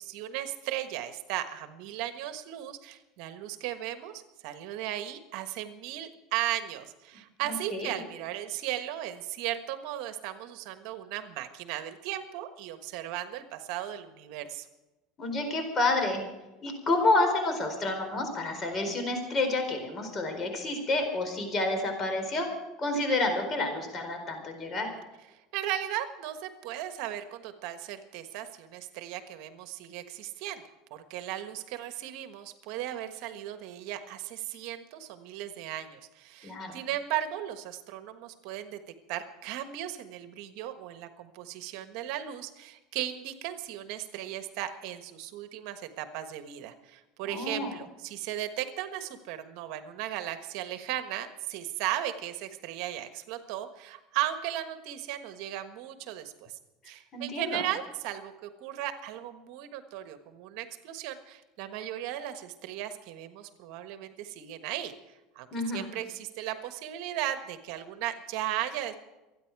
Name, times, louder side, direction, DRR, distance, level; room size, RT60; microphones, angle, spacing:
voice 1, 0.0-14.7 25.3-30.6 30.9-38.8 39.1-56.6 56.8-65.5 65.7-68.9, right 12 dB, 65° right, 9 dB, 1.3 m, -36 dB
voice 2, 7.4-7.9 15.2-16.2 16.6-22.5 22.8-24.9 36.4-36.7 47.2-47.7 57.1-57.6 65.5-65.9, left 2 dB, 30° left, 5 dB, 4.4 m, -29 dB
26.5 x 9.8 x 4.8 m, 1.0 s
supercardioid pair, 130°, 0 cm